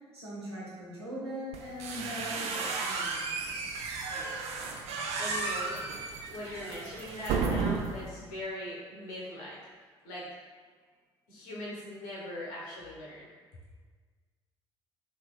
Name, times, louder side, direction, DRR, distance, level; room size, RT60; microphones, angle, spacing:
voice 1, 0.1-3.8, equal, 85° right, -7 dB, 0.7 m, -41 dB
sound 1, 1.5-8.1, right 4 dB, 55° right, 0.4 m, -33 dB
voice 2, 5.2-5.9 6.3-9.6 10.0-10.3 11.3-13.3, left 1 dB, 65° left, -5 dB, 0.9 m, -40 dB
3.2 x 3.0 x 2.2 m, 1.5 s
figure-of-eight pair, 50°, 13 cm